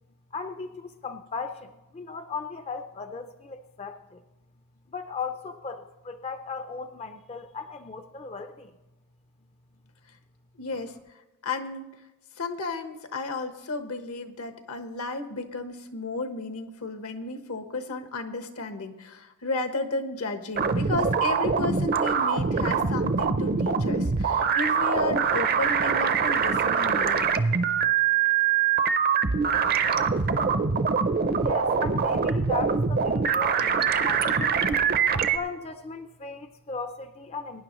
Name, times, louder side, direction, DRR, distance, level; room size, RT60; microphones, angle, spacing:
voice 1, 0.3-4.2 4.9-8.7 31.4-34.6 35.3-37.6, left 4 dB, 25° left, 8 dB, 0.4 m, -37 dB
voice 2, 10.6-11.0 11.4-11.9 12.4-27.3, left 2 dB, 75° left, 7 dB, 1.1 m, -33 dB
sound 1, 20.6-35.4, right 6 dB, 45° right, 0.5 m, -24 dB
21.5 x 10.0 x 3.0 m, 1.0 s
head